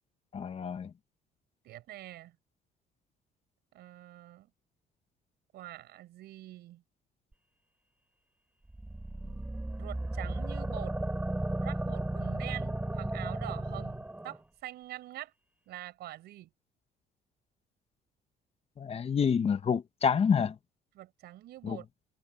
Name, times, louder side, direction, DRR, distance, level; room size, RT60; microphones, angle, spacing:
voice 1, 0.3-0.9 18.8-20.5 21.6-21.8, left 6 dB, 35° left, 1.1 m, -28 dB
voice 2, 1.6-2.4 3.7-4.5 5.5-6.8 9.2-9.4 9.7-11.0 11.6-15.3 15.7-16.5 20.9-21.9, right 14 dB, 75° right, 5.3 m, -45 dB
sound 1, 8.7-14.4, right 1 dB, 10° right, 3.9 m, -34 dB
cardioid pair, 110°, 17 cm